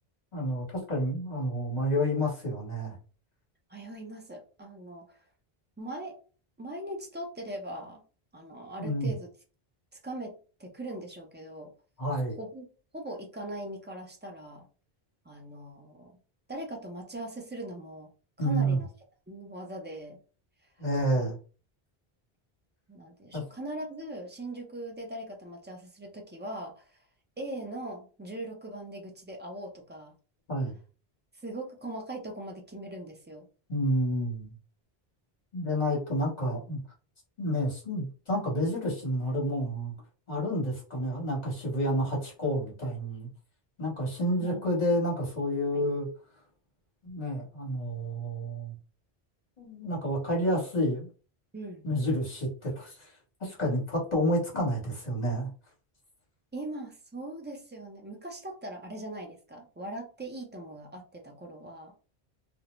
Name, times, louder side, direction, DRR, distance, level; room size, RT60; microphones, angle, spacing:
voice 1, 0.3-2.9 8.8-9.1 12.0-12.4 18.4-18.8 20.8-21.4 23.3-23.4 30.5-30.8 33.7-34.5 35.5-36.8 37.4-39.9 40.3-43.3 43.8-46.1 47.0-48.7 49.6-51.1 51.8-53.1 53.4-55.5, equal, 45° left, -3 dB, 1.3 m, -29 dB
voice 2, 3.7-5.2 5.8-6.2 6.6-8.0 8.3-9.3 10.0-11.7 12.4-12.7 12.9-14.7 15.2-16.1 16.5-18.1 18.4-18.9 19.3-20.2 20.8-20.9 21.1-21.2 22.9-26.8 27.4-30.1 31.4-33.5 35.6-35.7 44.3-44.7 45.7-45.8 51.5-51.9 56.5-61.9, right 1 dB, 20° right, 2 dB, 0.3 m, -40 dB
2.5 x 2.0 x 3.0 m, 0.37 s
omnidirectional pair, 1.1 m